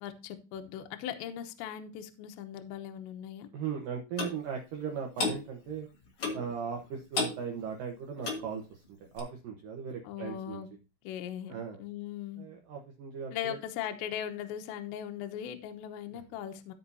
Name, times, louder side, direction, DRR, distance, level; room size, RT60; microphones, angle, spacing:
voice 1, 0.0-3.5 10.0-10.7 11.0-11.5 11.8-12.5 13.3-16.7, left 10 dB, 75° left, 7 dB, 3.0 m, -39 dB
voice 2, 3.5-5.9 6.3-8.8 9.1-10.6 11.5-11.8 12.4-13.6 16.1-16.2, right 6 dB, 90° right, 2 dB, 1.9 m, -38 dB
Clock, 4.2-4.4 5.2-5.4 6.2-6.5 7.1-7.4 8.2-8.5 9.2-9.3, left 3 dB, 60° left, 1.5 m, -32 dB
14.5 x 5.7 x 2.7 m, 0.31 s
omnidirectional pair, 5.7 m